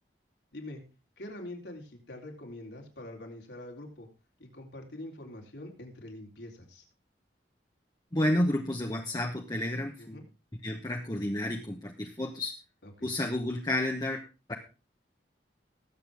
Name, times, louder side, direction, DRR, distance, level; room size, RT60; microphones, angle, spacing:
voice 1, 1.2-4.1 4.4-6.8 10.0-10.2 12.8-13.1, left 1 dB, 80° left, 1 dB, 3.6 m, -44 dB
voice 2, 8.1-10.2 10.6-12.5 13.0-14.2 14.5-14.6, left 1 dB, 20° left, 2 dB, 1.0 m, -31 dB
20.0 x 8.1 x 3.5 m, 0.31 s
head